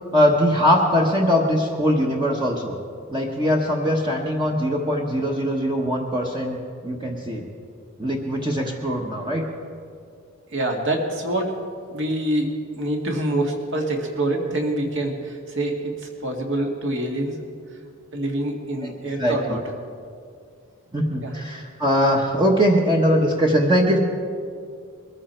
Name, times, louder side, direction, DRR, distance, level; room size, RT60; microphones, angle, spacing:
voice 1, 0.1-2.8 3.1-6.6 6.8-7.5 8.0-9.5 19.2-19.6 20.9-24.0, equal, 20° right, 0 dB, 1.1 m, -21 dB
voice 2, 10.5-11.6 11.9-17.4 18.1-19.6 21.2-21.3, right 1 dB, 55° right, 1 dB, 2.1 m, -26 dB
22.0 x 14.0 x 4.5 m, 2.3 s
head